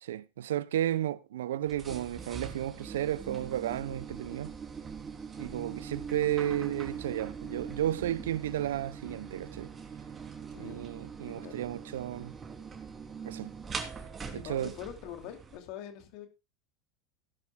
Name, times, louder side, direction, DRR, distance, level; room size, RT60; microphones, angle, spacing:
voice 1, 0.1-4.5 5.4-9.7 10.6-12.3 13.2-13.5 14.3-14.7, right 12 dB, 75° right, 0.6 m, -33 dB
sound 1, 1.7-15.6, right 6 dB, 25° right, 3.0 m, -42 dB
voice 2, 10.5-10.8 11.3-11.6 14.3-16.3, left 10 dB, 55° left, 2.6 m, -44 dB
17.0 x 11.0 x 2.3 m
hypercardioid pair, 85°, 0 cm